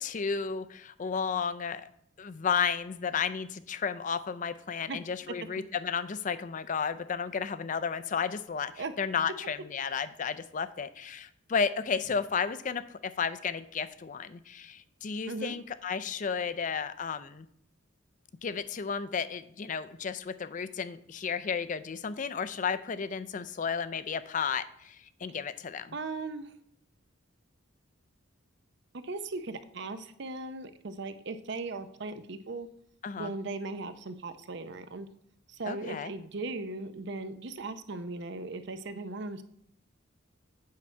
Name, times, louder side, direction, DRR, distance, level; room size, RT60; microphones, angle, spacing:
voice 1, 0.0-1.9 2.2-17.5 18.4-26.0 33.0-33.3 35.7-36.1, left 6 dB, 40° left, 13 dB, 0.4 m, -33 dB
voice 2, 15.3-15.6 25.9-26.5 29.0-32.7 33.2-35.1 35.5-39.4, right 3 dB, 60° right, 10 dB, 0.6 m, -38 dB
8.5 x 5.9 x 4.4 m, 0.70 s
head